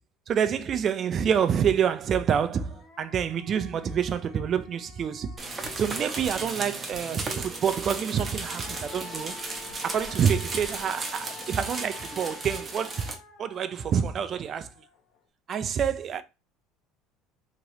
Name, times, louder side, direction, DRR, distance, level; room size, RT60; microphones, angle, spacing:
voice 1, 0.3-5.3 5.8-9.3 9.8-13.0 13.4-14.7 15.5-16.2, right 8 dB, 40° right, 0.3 m, -27 dB
sound 1, 2.1-2.2 2.6-6.2 7.9-15.2, left 6 dB, 55° left, 0.8 m, -48 dB
sound 2, 5.4-13.1, right 3 dB, 25° right, 0.8 m, -35 dB
2.9 x 2.9 x 2.7 m
supercardioid pair, 110°, 0 cm